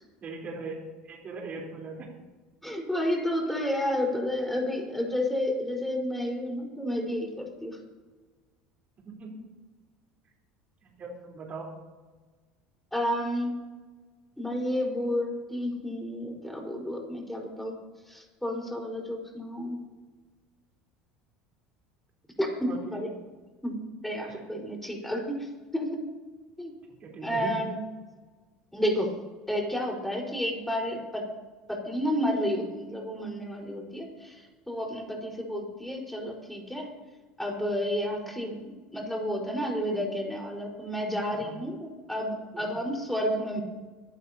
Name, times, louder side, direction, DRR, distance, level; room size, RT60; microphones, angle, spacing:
voice 1, 0.2-0.7 1.0-2.1 9.0-9.4 10.8-11.7 22.6-22.8 24.3-24.4 27.0-27.5 41.3-41.6 42.5-42.7, right 4 dB, 40° right, -2 dB, 4.2 m, -39 dB
voice 2, 2.6-7.8 12.9-13.6 14.4-17.7 18.1-19.8 22.4-23.1 23.6-26.0 26.6-26.7 27.2-27.8 28.7-29.1 29.5-31.3 31.7-36.9 37.4-43.6, equal, 5° left, 0 dB, 4.9 m, -31 dB
24.0 x 12.0 x 3.0 m, 1.3 s
hypercardioid pair, 80°, 4 cm